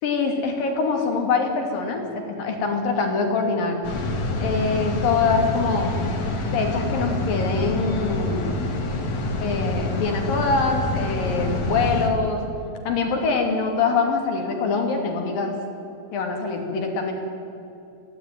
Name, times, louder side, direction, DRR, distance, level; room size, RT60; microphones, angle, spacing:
voice 1, 0.0-3.8 4.4-6.0 6.5-8.6 9.4-12.4 12.9-15.5 16.1-17.1, left 4 dB, 85° left, 3 dB, 4.6 m, -24 dB
sound 1, 3.8-12.1, left 2 dB, 60° left, 3.8 m, -26 dB
22.5 x 17.0 x 9.5 m, 2.8 s
omnidirectional pair, 3.9 m